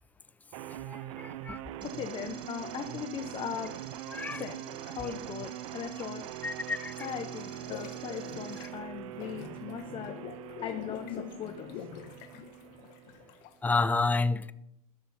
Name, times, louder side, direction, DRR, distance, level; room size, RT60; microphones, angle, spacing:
sound 1, 0.5-13.5, right 13 dB, 65° right, 0.6 m, -43 dB
voice 1, 0.9-1.6 4.1-4.4 6.4-7.1 13.6-14.5, left 3 dB, 10° left, 0.5 m, -30 dB
voice 2, 1.8-3.8 4.3-6.3 7.0-10.2 10.6-11.9, left 8 dB, 30° left, 1.0 m, -39 dB
sound 2, 1.8-8.7, right 7 dB, 25° right, 1.8 m, -51 dB
sound 3, 6.9-13.7, left 10 dB, 50° left, 1.1 m, -45 dB
13.0 x 11.5 x 4.2 m
supercardioid pair, 135°, 19 cm